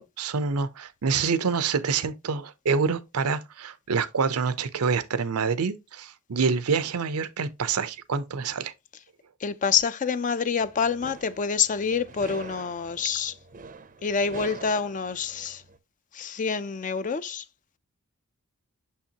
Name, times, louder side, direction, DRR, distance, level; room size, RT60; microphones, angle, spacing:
voice 1, 0.0-8.7, right 5 dB, 85° right, 0.6 m, -27 dB
voice 2, 9.4-13.3 14.0-15.6 16.1-17.4, left 6 dB, 35° left, 0.4 m, -27 dB
sound 1, 10.6-15.8, right 4 dB, 40° right, 0.5 m, -45 dB
6.4 x 5.6 x 2.8 m
head